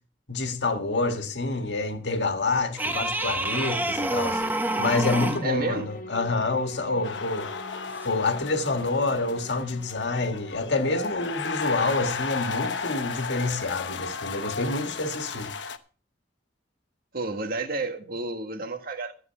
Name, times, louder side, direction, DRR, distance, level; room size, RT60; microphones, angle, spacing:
voice 1, 0.3-4.4 4.8-7.6 8.0-15.5, left 3 dB, 70° left, 1.8 m, -27 dB
sound 1, 2.8-5.5 8.0-8.1, right 1 dB, 10° right, 0.9 m, -27 dB
sound 2, 3.8-12.1, left 2 dB, 50° left, 1.6 m, -45 dB
voice 2, 5.4-5.9 17.1-19.1, right 3 dB, 55° right, 1.7 m, -31 dB
sound 3, 7.0-15.8, left 5 dB, 90° left, 1.0 m, -34 dB
14.0 x 7.8 x 5.8 m
head